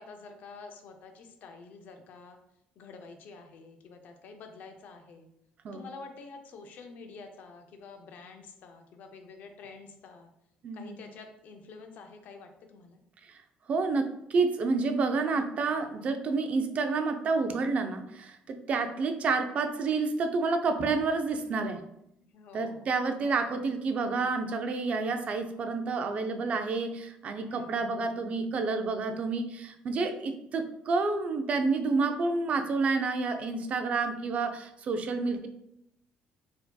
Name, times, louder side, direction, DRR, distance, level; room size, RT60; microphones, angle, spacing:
voice 1, 0.0-2.4 2.8-5.3 5.7-10.3 10.7-13.0 22.2-22.9 27.5-27.9, left 4 dB, 60° left, 5 dB, 0.5 m, -48 dB
voice 2, 10.6-11.0 13.3-13.4 13.7-21.8 22.5-35.5, right 4 dB, 45° right, 7 dB, 0.3 m, -29 dB
4.3 x 2.7 x 2.2 m, 0.79 s
cardioid pair, 125°, 3 cm